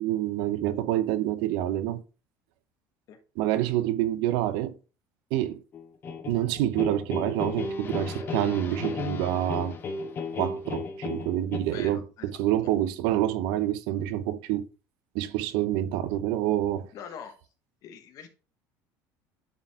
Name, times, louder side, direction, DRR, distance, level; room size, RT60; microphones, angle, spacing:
voice 1, 0.0-2.0 3.4-4.8 5.3-5.6 6.3-9.8 10.3-14.7 15.1-16.9, right 13 dB, 75° right, 0.6 m, -27 dB
sound 1, 5.7-11.6, left 4 dB, 30° left, 0.9 m, -35 dB
voice 2, 11.7-12.3 16.9-17.3 17.8-18.3, left 8 dB, 50° left, 1.2 m, -43 dB
9.2 x 4.6 x 3.5 m
cardioid pair, 155°, 8 cm